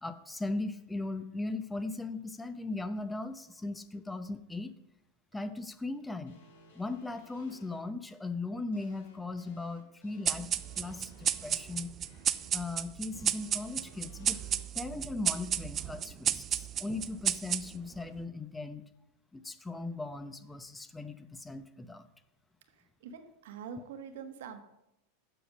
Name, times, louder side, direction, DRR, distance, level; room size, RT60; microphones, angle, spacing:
voice 1, 0.0-4.7 5.3-6.3 6.8-11.9 12.5-14.4 14.7-18.9 19.3-22.1, left 2 dB, 10° left, 11 dB, 0.7 m, -38 dB
sound 1, 6.3-7.8 8.7-12.5 13.1-14.6, left 1 dB, 80° left, 2.9 m, -58 dB
sound 2, 10.2-18.0, right 9 dB, 35° right, 0.4 m, -33 dB
voice 2, 22.7-24.6, right 6 dB, 70° right, 7 dB, 1.3 m, -45 dB
7.7 x 6.7 x 6.3 m, 0.87 s
hypercardioid pair, 105°, 0 cm